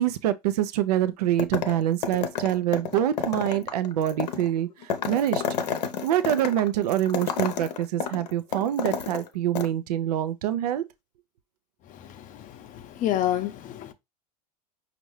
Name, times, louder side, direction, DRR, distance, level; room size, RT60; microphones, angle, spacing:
voice 1, 0.0-5.4 6.0-10.8, right 12 dB, 75° right, 0.5 m, -25 dB
sound 1, 1.4-1.8 2.0-9.3 9.5-9.7, left 7 dB, 80° left, 0.7 m, -30 dB
voice 2, 12.1-13.9, left 12 dB, 40° left, 0.7 m, -29 dB
5.3 x 2.5 x 3.1 m
hypercardioid pair, 90°, 21 cm